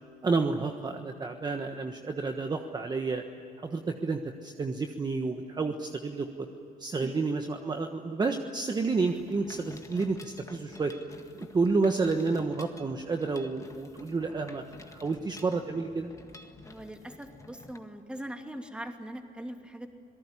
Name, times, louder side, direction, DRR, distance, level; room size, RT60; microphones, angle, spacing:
voice 1, 0.2-3.2 3.6-6.5 6.8-10.9 11.3-14.7 14.9-16.1, right 4 dB, 25° right, 5 dB, 1.3 m, -30 dB
Mechanisms, 9.0-17.8, left 3 dB, 20° left, 1.8 m, -50 dB
voice 2, 16.7-19.9, right 1 dB, 5° right, 4 dB, 2.8 m, -41 dB
27.0 x 18.5 x 9.9 m, 2.9 s
cardioid pair, 110°, 17 cm